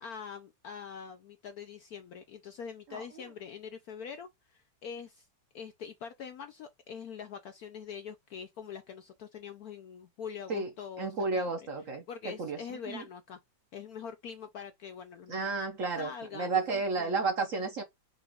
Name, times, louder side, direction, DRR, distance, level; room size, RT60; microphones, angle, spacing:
voice 1, 0.0-5.3 5.5-11.7 12.1-13.4 13.7-15.6 16.0-17.2, left 7 dB, 70° left, 0.9 m, -44 dB
voice 2, 11.0-12.6 12.9-13.0 15.3-16.1 16.3-17.8, right 4 dB, 55° right, 1.0 m, -32 dB
5.9 x 2.5 x 3.5 m
omnidirectional pair, 2.1 m